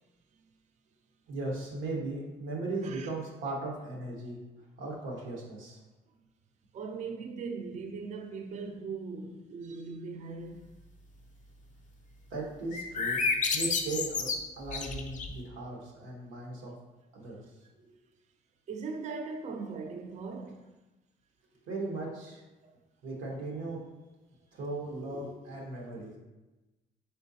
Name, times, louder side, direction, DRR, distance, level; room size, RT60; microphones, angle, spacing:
voice 1, 1.3-4.4 4.8-5.8 12.3-13.2 13.5-16.7 17.1-17.4 17.8-17.9 21.7-22.4 23.0-23.8 24.5-26.2, right 2 dB, 90° right, 1.1 m, -37 dB
voice 2, 6.7-10.6 18.7-20.6 22.6-22.8, right 4 dB, 35° right, 0.4 m, -39 dB
sound 1, 12.7-15.4, left 4 dB, 40° left, 0.5 m, -31 dB
4.2 x 3.6 x 2.7 m
cardioid pair, 90°, 20 cm